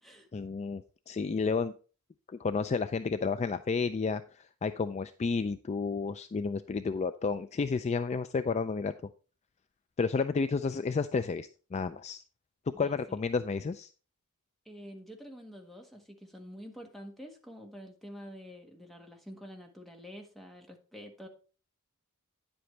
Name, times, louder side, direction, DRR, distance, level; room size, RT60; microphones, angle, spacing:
voice 1, 0.3-1.7 2.3-8.9 10.0-12.2 12.8-13.9, left 4 dB, 30° left, 11 dB, 0.3 m, -31 dB
voice 2, 12.7-13.2 14.6-21.3, equal, ahead, 2 dB, 1.5 m, -48 dB
9.9 x 7.9 x 3.3 m, 0.36 s
head